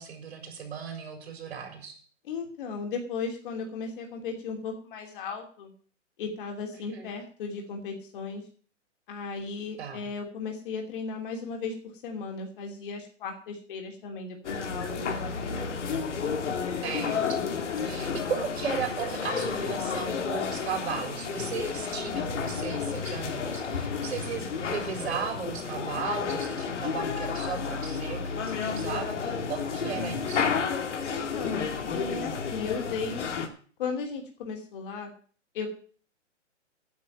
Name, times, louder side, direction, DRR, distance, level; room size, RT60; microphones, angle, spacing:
voice 1, 0.0-2.0 6.9-7.1 9.8-10.1 16.8-17.4 17.8-30.6, right 6 dB, 55° right, 4 dB, 4.4 m, -36 dB
voice 2, 2.2-5.7 6.2-8.4 9.1-11.7 12.0-15.7 31.1-33.3 33.8-35.1 35.5-35.7, left 5 dB, 45° left, 2 dB, 3.0 m, -36 dB
sound 1, 14.4-33.5, left 5 dB, 70° left, 2.5 m, -31 dB
9.5 x 7.8 x 9.1 m, 0.43 s
hypercardioid pair, 155°, 37 cm